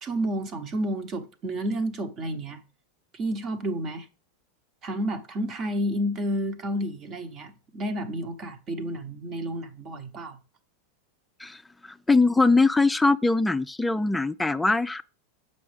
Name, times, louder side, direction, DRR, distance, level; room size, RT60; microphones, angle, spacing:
voice 1, 0.0-2.6 3.1-4.1 4.8-10.4, right 1 dB, 40° right, 0.9 m, -30 dB
voice 2, 11.4-15.0, left 3 dB, 10° left, 0.3 m, -22 dB
6.9 x 5.3 x 3.3 m
hypercardioid pair, 100°, 0 cm